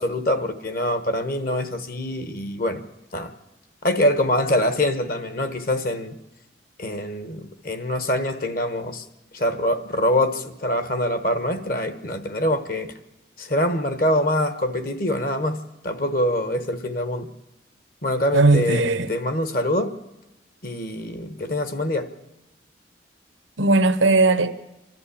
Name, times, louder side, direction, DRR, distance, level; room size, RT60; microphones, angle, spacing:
voice 1, 0.0-2.8 3.1-3.3 3.8-6.2 6.8-9.0 9.3-12.9 13.4-15.6 15.8-17.3 18.0-19.9 20.6-22.1, left 1 dB, 45° left, 1.2 m, -24 dB
voice 2, 18.3-19.1 23.6-24.5, right 3 dB, 90° right, 1.0 m, -18 dB
29.0 x 12.0 x 8.5 m
head